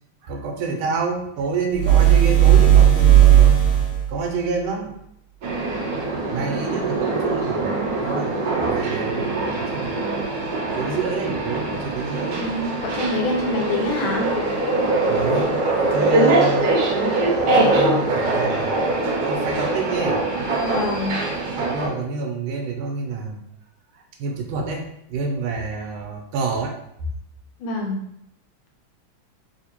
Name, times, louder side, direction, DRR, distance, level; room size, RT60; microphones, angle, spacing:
voice 1, 0.3-3.5 4.1-4.9 6.3-8.4 8.6-10.0 10.8-12.4 15.1-15.5 15.8-16.6 17.4-18.9 19.3-20.2 21.6-23.4 24.2-24.8 25.1-26.8, right 4 dB, 80° right, 2 dB, 1.4 m, -28 dB
sound 1, 1.7-4.1, right 11 dB, 45° left, 1.3 m, -13 dB
sound 2, 5.4-21.9, right 2 dB, 65° right, 1.1 m, -23 dB
voice 2, 12.4-14.3 14.8-14.9 20.6-21.1 27.6-28.0, left 2 dB, 80° left, 1 dB, 1.4 m, -25 dB
3.5 x 2.8 x 2.9 m, 0.74 s
omnidirectional pair, 2.3 m